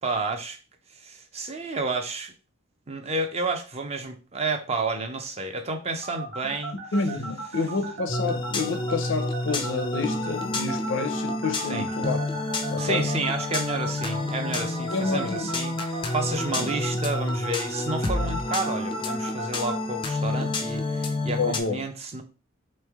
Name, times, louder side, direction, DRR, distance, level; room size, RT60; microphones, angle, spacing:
voice 1, 0.0-0.6 1.0-2.3 2.9-6.8 11.7-11.9 12.8-22.2, right 3 dB, 30° right, 0.5 m, -30 dB
sound 1, 6.0-19.8, right 4 dB, 60° right, 1.1 m, -36 dB
voice 2, 6.9-12.3 12.7-13.1 14.9-15.5 16.6-16.7 21.4-21.8, left 3 dB, 65° left, 0.6 m, -29 dB
sound 2, 8.1-21.6, left 2 dB, 25° left, 0.4 m, -29 dB
3.5 x 3.2 x 3.5 m
head